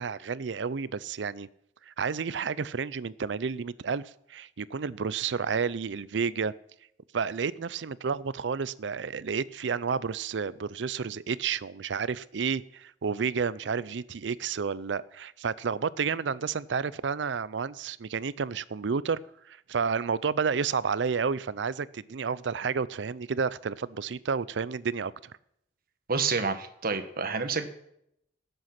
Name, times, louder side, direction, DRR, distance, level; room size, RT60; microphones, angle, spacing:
voice 1, 0.0-1.5 1.9-6.5 7.1-19.2 19.5-25.3, right 5 dB, 75° right, 19 dB, 0.5 m, -31 dB
voice 2, 26.1-27.7, right 4 dB, 55° right, 8 dB, 1.2 m, -28 dB
18.0 x 7.9 x 5.9 m, 0.75 s
head